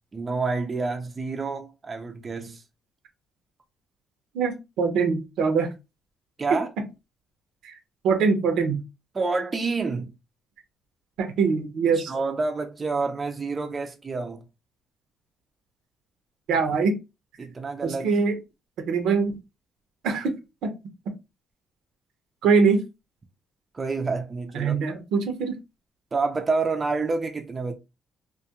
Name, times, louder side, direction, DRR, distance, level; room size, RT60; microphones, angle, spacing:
voice 1, 0.1-2.6 6.4-6.7 9.1-10.1 12.1-14.4 17.4-18.1 23.7-24.8 26.1-27.7, right 4 dB, 30° right, 0.4 m, -28 dB
voice 2, 4.3-5.7 6.5-6.6 7.6-7.7 8.0-8.8 11.2-12.1 16.5-17.0 17.8-18.4 18.8-19.3 20.0-20.3 20.6-20.7 22.4-22.8 24.5-25.5, right 5 dB, 80° right, 0.7 m, -23 dB
2.3 x 2.2 x 2.8 m
cardioid pair, 85°, 0 cm